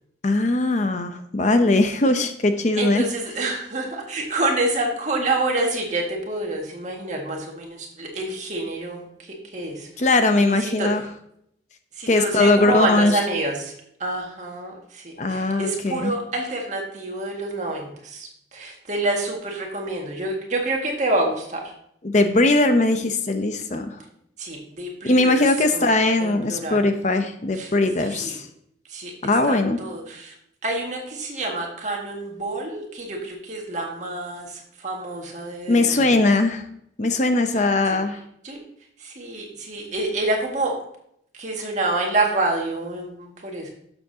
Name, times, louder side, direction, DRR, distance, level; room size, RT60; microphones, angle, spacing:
voice 1, 0.2-3.0 10.0-11.0 12.1-13.2 15.2-16.1 22.0-24.0 25.0-28.5 29.2-29.8 35.7-36.7 37.0-38.2, left 2 dB, 40° left, 8 dB, 0.7 m, -20 dB
voice 2, 2.8-9.1 9.4-9.9 10.3-10.9 11.9-13.7 14.0-21.6 24.4-25.4 25.7-25.9 26.2-26.9 27.5-27.7 28.0-28.4 28.9-30.4 30.6-36.1 37.8-38.0 38.4-38.6 39.0-40.7 41.3-43.7, right 2 dB, 40° right, 0 dB, 1.9 m, -27 dB
12.0 x 7.1 x 2.8 m, 0.72 s
head